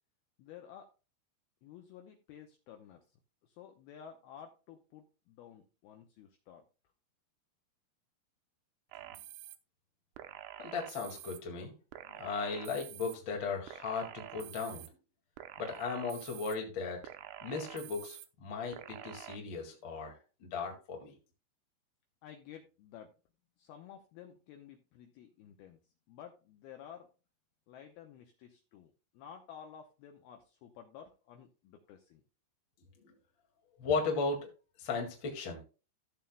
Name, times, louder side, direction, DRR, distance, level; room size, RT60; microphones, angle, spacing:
voice 1, 0.4-0.8 1.6-3.0 3.6-6.6 22.2-23.1 23.6-25.8 26.1-27.1 27.7-28.9 29.2-32.2, left 9 dB, 80° left, 3 dB, 2.2 m, -52 dB
sound 1, 8.9-9.6 10.2-11.4 11.9-13.2 13.7-14.9 15.4-16.6 17.0-18.3 18.7-19.4, right 13 dB, 80° right, 2.6 m, -48 dB
voice 2, 10.6-11.7 12.1-14.9 15.6-17.0 17.4-18.8 19.0-21.1 33.0-33.1 33.8-34.5 34.8-35.6, left 4 dB, 45° left, 1 dB, 1.6 m, -36 dB
15.0 x 7.4 x 2.2 m, 0.33 s
omnidirectional pair, 5.4 m